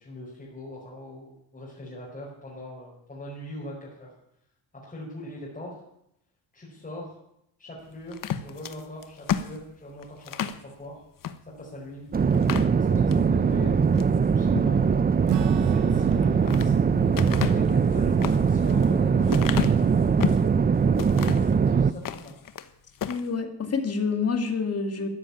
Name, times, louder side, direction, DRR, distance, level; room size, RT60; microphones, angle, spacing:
voice 1, 0.0-4.1 4.7-5.8 6.5-7.2 7.6-10.9 11.6-12.1 12.8-15.0 15.5-16.7 17.4-20.0 21.7-22.3, left 1 dB, 20° left, -4 dB, 4.8 m, -41 dB
sound 1, 8.1-10.6 11.2-11.4 11.8-11.9 12.3-13.2 13.7-14.2 16.0-16.7 17.2-20.5 21.0-21.5 21.9-22.7 23.0-23.3, left 8 dB, 55° left, 1.1 m, -32 dB
sound 2, 12.1-21.9, right 6 dB, 25° right, 0.6 m, -21 dB
Acoustic guitar / Strum, 15.3-21.2, right 11 dB, 85° right, 1.1 m, -37 dB
voice 2, 23.1-25.1, left 5 dB, 35° left, 6 dB, 2.3 m, -27 dB
13.5 x 11.0 x 8.6 m, 0.77 s
cardioid pair, 130°, 41 cm